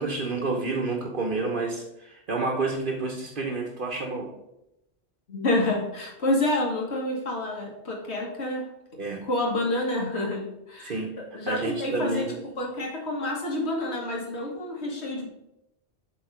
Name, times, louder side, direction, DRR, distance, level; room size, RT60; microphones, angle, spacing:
voice 1, 0.0-4.3 9.0-9.2 10.8-11.1 11.5-12.4, right 3 dB, 55° right, 0 dB, 1.2 m, -29 dB
voice 2, 5.3-8.7 9.2-10.9 11.3-12.3 12.6-15.3, left 1 dB, 80° left, -1 dB, 1.9 m, -28 dB
8.1 x 3.8 x 5.1 m, 0.86 s
omnidirectional pair, 1.1 m